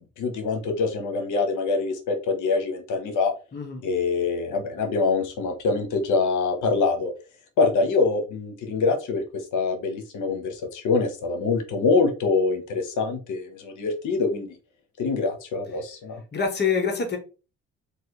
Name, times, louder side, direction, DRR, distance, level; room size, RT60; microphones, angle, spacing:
voice 1, 0.0-3.3 3.8-7.1 7.6-14.5 15.0-16.2, left 4 dB, 80° left, 5 dB, 0.9 m, -25 dB
voice 2, 3.5-3.8 16.3-17.2, left 5 dB, 35° left, 2 dB, 1.1 m, -25 dB
3.2 x 2.6 x 2.9 m, 0.33 s
cardioid pair, 90°, 30 cm